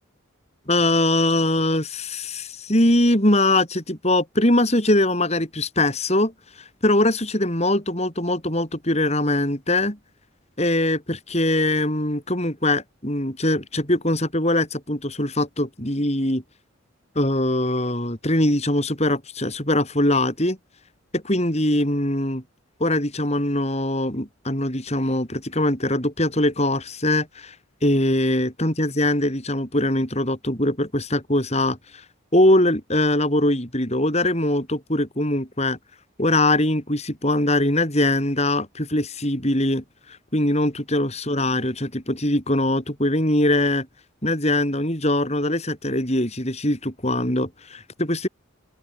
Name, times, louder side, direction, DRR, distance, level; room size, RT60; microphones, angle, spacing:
voice 1, 0.7-6.3 6.8-10.0 10.6-16.4 17.2-20.6 21.1-22.4 22.8-27.5 27.8-32.0 32.3-35.8 36.2-43.9 44.2-48.3, left 1 dB, 30° left, 7.4 m, -22 dB
open air
head